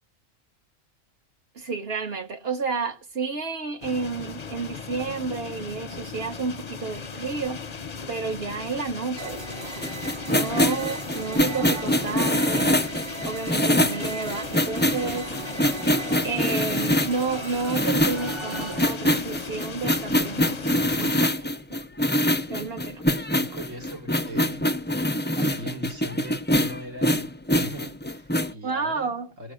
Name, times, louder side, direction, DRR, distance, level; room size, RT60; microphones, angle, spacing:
voice 1, 1.5-7.6 8.1-9.9 10.3-12.9 13.2-15.6 16.2-20.6 21.0-21.8 22.5-23.0 28.6-29.3, right 4 dB, 50° right, 1.5 m, -31 dB
sound 1, 3.8-21.3, left 5 dB, 40° left, 0.7 m, -37 dB
sound 2, 9.2-18.8, right 3 dB, 25° right, 0.9 m, -38 dB
sound 3, 9.8-17.2 17.7-28.5, equal, 15° left, 0.5 m, -24 dB
voice 2, 23.4-24.7 25.4-29.5, equal, 75° right, 3.4 m, -40 dB
18.0 x 7.6 x 6.4 m
omnidirectional pair, 1.3 m